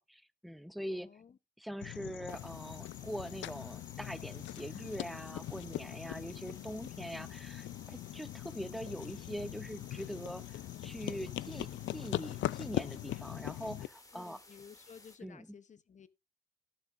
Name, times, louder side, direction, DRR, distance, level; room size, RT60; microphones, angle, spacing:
voice 1, 0.0-1.1 1.6-14.4 15.2-15.5, equal, ahead, 0.7 m, -43 dB
voice 2, 0.9-1.4 6.0-6.2 14.1-16.1, left 7 dB, 40° left, 0.8 m, -55 dB
sound 1, 1.8-13.9, left 14 dB, 70° left, 0.5 m, -41 dB
sound 2, 2.3-15.2, left 2 dB, 15° left, 2.6 m, -58 dB
17.5 x 7.2 x 2.5 m
cardioid pair, 90°, 20 cm